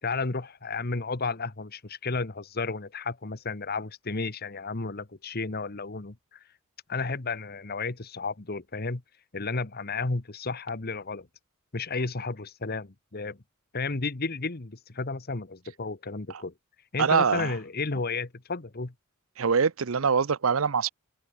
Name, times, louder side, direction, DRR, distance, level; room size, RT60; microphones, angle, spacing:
voice 1, 0.0-6.4 6.9-9.0 9.3-11.3 11.7-13.4 13.7-16.5 16.9-18.9, left 3 dB, 50° left, 1.3 m, -32 dB
voice 2, 17.0-17.5 19.4-20.9, right 6 dB, 75° right, 0.7 m, -24 dB
head